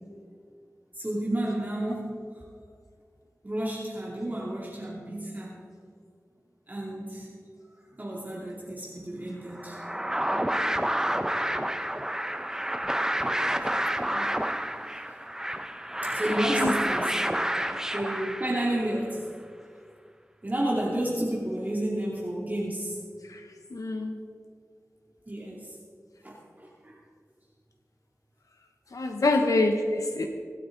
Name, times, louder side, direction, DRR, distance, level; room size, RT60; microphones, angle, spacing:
voice 1, 0.9-2.4 3.4-5.6 6.7-7.3 8.0-9.8 11.7-11.9 13.2-13.7 14.0-14.1 14.4-14.6 14.8-15.3 15.9-17.1 17.9-19.3 20.4-23.0 25.3-25.8 26.2-27.0, right 1 dB, 30° right, -5 dB, 2.8 m, -31 dB
sound 1, 9.6-18.9, right 1 dB, 10° right, 0.8 m, -29 dB
voice 2, 23.7-24.2 28.9-30.3, left 2 dB, 85° left, 4 dB, 1.0 m, -26 dB
24.5 x 9.5 x 3.9 m, 2.1 s
wide cardioid pair, 50°, 6 cm